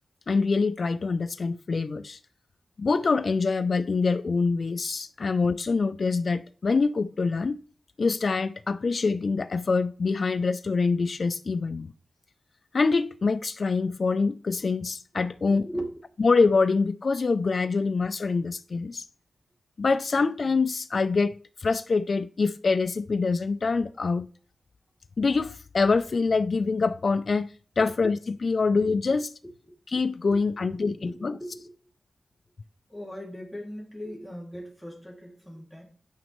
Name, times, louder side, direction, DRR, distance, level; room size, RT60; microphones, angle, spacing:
voice 1, 0.3-2.2 2.8-7.6 8.0-11.9 12.7-15.7 16.2-19.1 19.8-21.3 21.6-24.3 25.2-27.5 27.8-29.3 29.9-31.4, left 4 dB, 50° left, 0.3 m, -25 dB
voice 2, 15.4-15.9 27.8-27.9 30.2-31.7 32.9-35.8, equal, 5° right, 2.4 m, -39 dB
9.3 x 5.2 x 3.0 m
wide cardioid pair, 140°, 0 cm